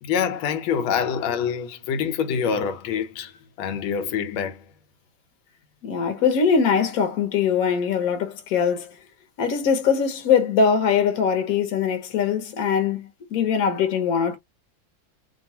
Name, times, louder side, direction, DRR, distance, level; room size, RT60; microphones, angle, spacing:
voice 1, 0.0-3.3 3.6-4.6, left 7 dB, 90° left, 1.4 m, -25 dB
voice 2, 5.8-9.0 9.4-14.4, left 6 dB, 55° left, 1.2 m, -22 dB
3.2 x 2.3 x 2.7 m
omnidirectional pair, 2.2 m